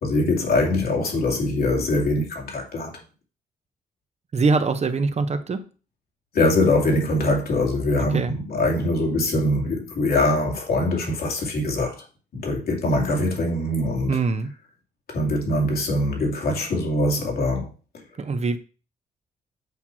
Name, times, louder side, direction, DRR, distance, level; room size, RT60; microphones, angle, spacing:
voice 1, 0.0-2.9 6.3-12.0 12.3-14.2 15.1-17.7, left 1 dB, 70° left, 2.6 m, -23 dB
voice 2, 4.3-5.6 8.1-8.4 14.1-14.5 18.2-18.6, right 4 dB, 40° right, 0.9 m, -23 dB
8.1 x 2.9 x 6.0 m
cardioid pair, 65°, 16 cm